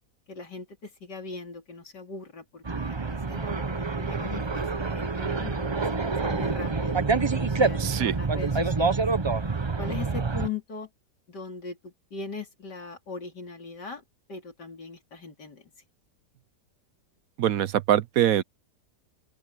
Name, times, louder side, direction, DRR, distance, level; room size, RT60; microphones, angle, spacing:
voice 1, 0.3-9.0 9.8-10.9 11.3-14.0 14.3-15.7, left 4 dB, 75° left, 3.9 m, -40 dB
sound 1, 2.7-10.5, right 4 dB, 30° right, 0.5 m, -27 dB
voice 2, 7.8-8.1 17.4-18.4, right 11 dB, 65° right, 1.0 m, -23 dB
open air
omnidirectional pair, 1.8 m